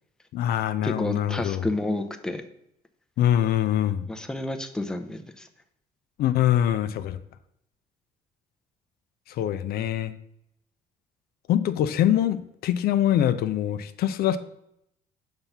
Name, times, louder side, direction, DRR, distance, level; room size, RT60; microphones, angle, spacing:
voice 1, 0.3-1.7 3.2-4.1 6.2-7.2 9.3-10.1 11.5-14.4, left 11 dB, 65° left, 11 dB, 0.4 m, -24 dB
voice 2, 0.8-2.4 4.1-5.5, left 2 dB, 5° left, 6 dB, 0.5 m, -30 dB
5.6 x 3.5 x 5.5 m, 0.77 s
cardioid pair, 110°, 17 cm